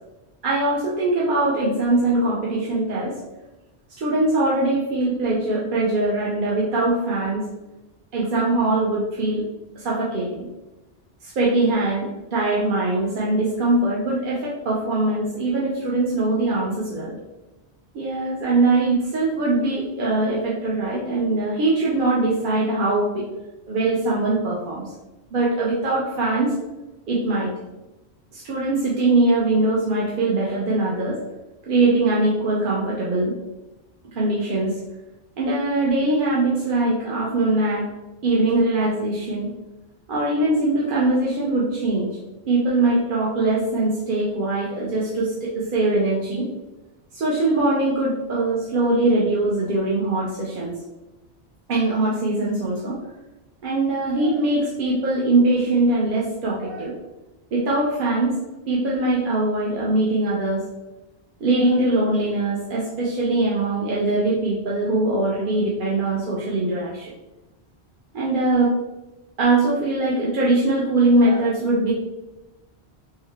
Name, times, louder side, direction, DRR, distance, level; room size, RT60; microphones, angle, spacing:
voice 1, 0.4-3.1 4.0-7.4 8.1-9.4 9.8-10.5 11.2-17.2 17.9-23.2 23.7-24.8 25.3-26.5 27.1-27.5 28.3-31.2 31.6-33.3 34.1-34.8 35.4-37.9 38.2-39.5 40.1-42.2 42.5-46.5 47.1-50.8 51.7-53.0 53.6-56.9 57.5-58.3 58.7-60.6 61.4-67.1 68.1-68.7 69.4-71.9, right 2 dB, 55° right, -5 dB, 0.7 m, -22 dB
3.6 x 2.1 x 3.3 m, 1.0 s
omnidirectional pair, 1.1 m